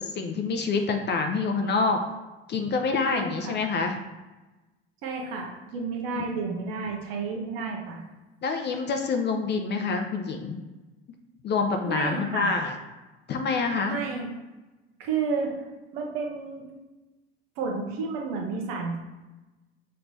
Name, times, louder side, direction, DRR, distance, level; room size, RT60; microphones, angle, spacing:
voice 1, 0.0-2.0 2.5-3.9 6.2-6.3 8.4-10.6 11.4-12.8 13.3-14.0, left 4 dB, 35° left, 5 dB, 0.5 m, -26 dB
voice 2, 3.1-3.5 5.0-8.0 11.8-12.5 13.9-14.3 15.0-15.5 15.9-16.7 17.6-19.0, right 4 dB, 65° right, 0 dB, 1.0 m, -31 dB
5.9 x 3.2 x 2.7 m, 1.1 s
hypercardioid pair, 70°, 32 cm